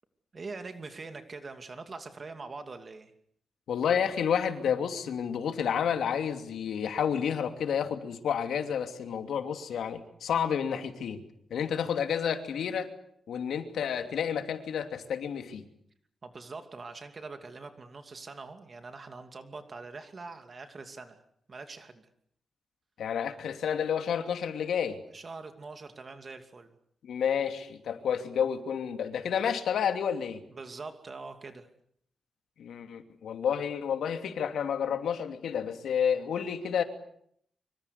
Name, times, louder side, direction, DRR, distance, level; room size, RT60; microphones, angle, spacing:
voice 1, 0.3-3.1 16.2-21.2 21.5-22.1 25.1-26.7 30.5-31.7, right 3 dB, 35° right, 7 dB, 2.6 m, -43 dB
voice 2, 3.7-11.2 11.5-12.9 13.3-15.6 23.0-25.0 27.0-30.4 32.6-36.8, left 8 dB, 90° left, 7 dB, 2.9 m, -30 dB
25.5 x 25.5 x 8.4 m, 0.69 s
wide cardioid pair, 120°, 0 cm